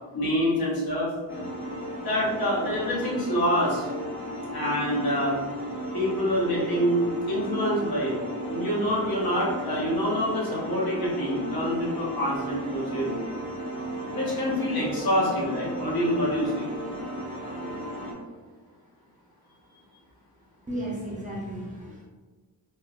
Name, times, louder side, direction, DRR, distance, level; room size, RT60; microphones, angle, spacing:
voice 1, 0.1-1.1 2.0-3.8 4.5-5.3 5.9-8.2 8.5-13.2 14.1-16.7, equal, 60° left, -6 dB, 1.2 m, -26 dB
sound 1, 1.3-18.1, equal, 30° left, 0.8 m, -35 dB
voice 2, 20.7-22.0, right 1 dB, 20° right, -5 dB, 0.6 m, -34 dB
4.4 x 2.1 x 2.4 m, 1.4 s
wide cardioid pair, 130°, 41 cm